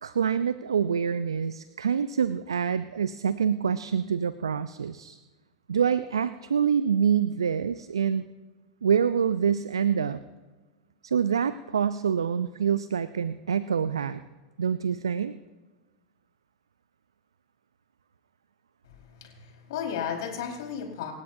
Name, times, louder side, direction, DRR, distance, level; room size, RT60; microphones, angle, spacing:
voice 1, 0.0-5.2 5.7-8.2 8.8-10.2 11.0-14.2 14.6-15.3, right 7 dB, 80° right, 14 dB, 0.5 m, -26 dB
voice 2, 18.8-21.1, left 8 dB, 65° left, 1 dB, 4.5 m, -34 dB
27.5 x 16.0 x 2.7 m, 1.2 s
figure-of-eight pair, 90°, 3 cm